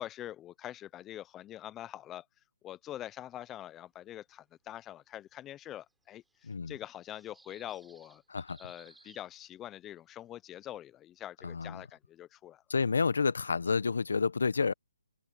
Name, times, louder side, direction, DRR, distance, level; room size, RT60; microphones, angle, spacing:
voice 1, 0.0-2.3 2.6-8.2 8.6-12.6, left 12 dB, 15° left, 0.4 m, -44 dB
sound 1, 5.8-9.5, right 3 dB, 5° right, 6.7 m, -61 dB
voice 2, 6.4-6.7 8.3-8.6 11.4-11.8 12.7-14.7, left 5 dB, 75° left, 1.0 m, -29 dB
hypercardioid pair, 160°, 0 cm